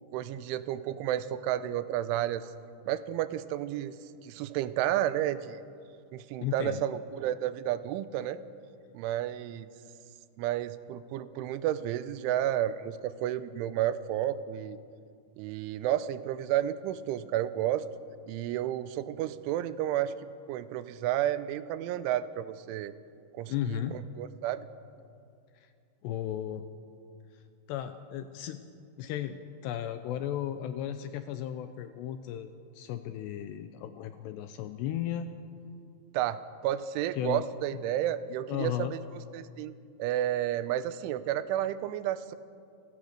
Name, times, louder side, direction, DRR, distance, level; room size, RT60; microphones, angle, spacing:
voice 1, 0.1-2.5 2.9-4.0 4.2-5.6 6.1-8.4 8.9-9.7 10.4-14.8 15.4-17.9 18.3-20.1 20.5-22.9 23.3-24.7 36.1-39.0 39.3-39.7 40.0-42.4, right 12 dB, 90° right, 14 dB, 3.2 m, -31 dB
voice 2, 6.4-6.8 23.5-24.0 25.6-25.7 26.0-26.7 27.7-28.6 29.0-32.5 32.7-35.3 37.2-37.4 38.5-38.9, left 11 dB, 75° left, 9 dB, 2.7 m, -35 dB
29.0 x 17.0 x 6.6 m, 2.4 s
omnidirectional pair, 5.4 m